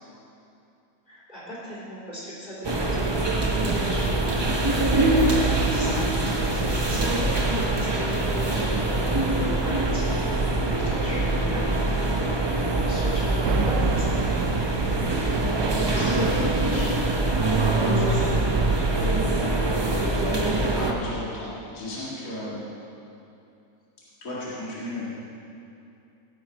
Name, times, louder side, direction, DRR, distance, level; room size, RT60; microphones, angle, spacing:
voice 1, 1.1-3.1 3.5-7.1 7.4-8.6 8.9-10.1 10.7-11.7 12.4-14.2 17.8-18.4, equal, 30° left, -8 dB, 3.7 m, -38 dB
sound 1, 2.6-20.9, right 2 dB, 25° right, 0.5 m, -23 dB
sound 2, 13.4-18.8, right 8 dB, 70° right, 0.8 m, -34 dB
voice 2, 15.7-16.9 19.8-20.3 20.6-22.7 24.2-25.1, left 1 dB, 55° left, -8 dB, 2.4 m, -35 dB
17.0 x 8.5 x 4.6 m, 2.7 s
omnidirectional pair, 1.8 m